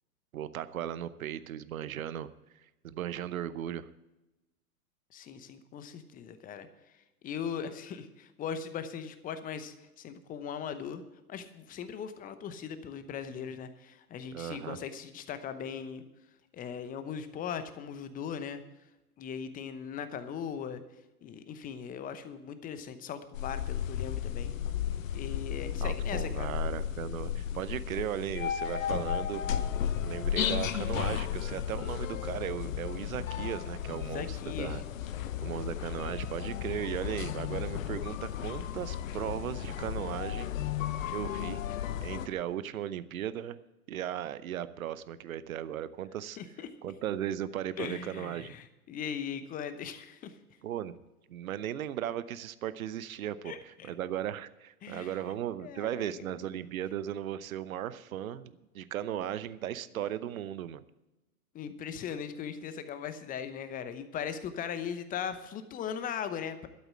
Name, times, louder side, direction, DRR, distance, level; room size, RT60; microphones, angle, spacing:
voice 1, 0.3-2.3 2.8-3.9 14.3-14.8 25.8-29.4 30.0-34.8 35.4-40.5 41.1-41.6 42.0-43.6 43.9-46.4 46.8-48.5 50.6-50.9 51.3-60.8, right 11 dB, 60° right, 15 dB, 0.9 m, -36 dB
voice 2, 5.1-6.7 7.2-11.0 11.3-16.0 16.5-18.6 19.2-20.8 21.2-24.5 25.1-26.6 34.0-34.8 35.2-35.3 46.4-46.7 47.8-50.4 53.4-53.9 54.8-55.2 55.6-56.3 61.5-66.7, left 7 dB, 20° left, 11 dB, 0.9 m, -39 dB
sound 1, 23.3-42.3, left 10 dB, 55° left, 0.9 m, -34 dB
12.5 x 8.0 x 7.6 m, 1.0 s
figure-of-eight pair, 110°, 46 cm